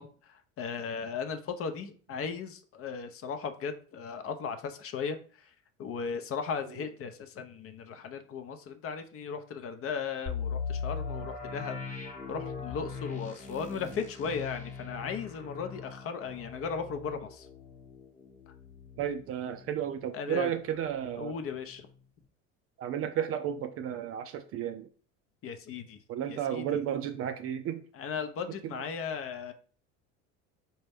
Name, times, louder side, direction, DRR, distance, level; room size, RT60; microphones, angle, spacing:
voice 1, 0.0-5.5 5.8-12.0 12.3-17.5 20.1-20.5 21.2-21.9 25.4-26.0 26.3-26.8 27.9-29.5, left 6 dB, 40° left, 0.6 m, -37 dB
sound 1, 10.3-20.0 20.3-20.4 20.9-21.2, left 5 dB, 20° left, 0.9 m, -39 dB
voice 2, 19.0-21.4 22.8-24.9 26.1-27.8 28.6-28.7, right 9 dB, 40° right, 0.4 m, -33 dB
4.2 x 2.3 x 3.4 m
supercardioid pair, 90°, 37 cm